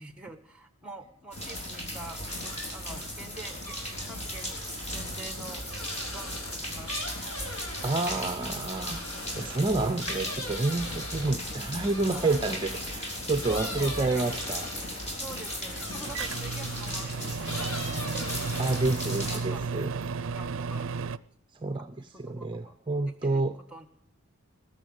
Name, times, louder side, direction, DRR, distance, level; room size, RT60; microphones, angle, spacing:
voice 1, 0.0-3.8 4.0-4.6 4.9-5.7 6.1-7.1 12.1-12.4 13.5-14.4 15.2-18.3 19.3-19.7 20.3-20.9 21.8-22.7 23.1-23.9, right 2 dB, 5° right, 9 dB, 1.3 m, -45 dB
sound 1, 1.3-19.4, equal, 30° left, 3.8 m, -36 dB
sound 2, 2.4-2.9 3.3-13.0 13.4-17.0 17.4-19.1 19.4-20.1, left 1 dB, 80° left, 4.1 m, -42 dB
voice 2, 7.8-9.0 9.4-14.7 18.6-19.9 21.6-23.6, right 2 dB, 25° right, 8 dB, 0.7 m, -29 dB
Microwave oven, 16.1-21.2, right 5 dB, 65° right, 0.5 m, -33 dB
20.0 x 7.2 x 9.0 m, 0.66 s
head